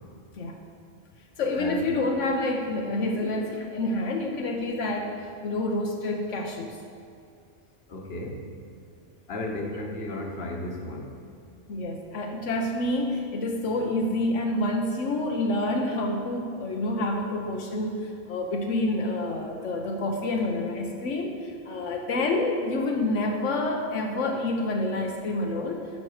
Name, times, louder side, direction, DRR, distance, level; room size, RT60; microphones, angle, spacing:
voice 1, 1.4-6.8 11.7-25.9, left 2 dB, 85° left, 1 dB, 1.2 m, -28 dB
voice 2, 7.9-8.5 9.3-11.1, left 1 dB, 55° left, 1 dB, 1.3 m, -34 dB
12.0 x 6.3 x 4.8 m, 2.3 s
omnidirectional pair, 1.2 m